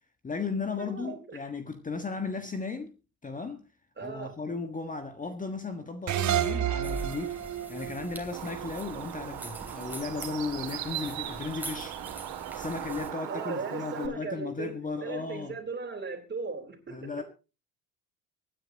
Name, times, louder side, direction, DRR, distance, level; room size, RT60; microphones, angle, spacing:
voice 1, 0.2-2.9 3.2-3.7 4.0-7.4 7.7-12.0 12.5-15.6 16.9-17.2, left 4 dB, 20° left, 1.5 m, -35 dB
voice 2, 0.8-1.4 4.0-4.3 13.3-14.7 15.0-17.1, right 4 dB, 25° right, 3.9 m, -37 dB
sound 1, 6.1-9.4, right 10 dB, 40° right, 1.8 m, -31 dB
sound 2, 6.8-13.1, right 1 dB, 5° right, 3.2 m, -45 dB
Bird, 8.3-14.1, right 12 dB, 60° right, 2.4 m, -39 dB
24.0 x 10.0 x 2.9 m
hypercardioid pair, 70°, 42 cm